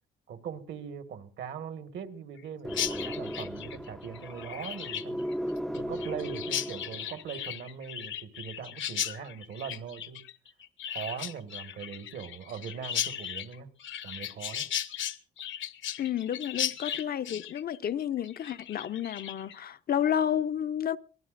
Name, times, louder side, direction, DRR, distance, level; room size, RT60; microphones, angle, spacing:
voice 1, 0.3-5.2 5.7-10.2 10.9-13.7 14.0-14.7, right 7 dB, 70° right, 1.7 m, -41 dB
sound 1, 2.6-7.3, equal, ahead, 0.6 m, -36 dB
Chirp tweet, 2.7-19.6, left 10 dB, 75° left, 1.1 m, -36 dB
voice 2, 16.0-21.0, left 9 dB, 50° left, 0.6 m, -31 dB
24.0 x 17.0 x 2.6 m
cardioid pair, 90°, 20 cm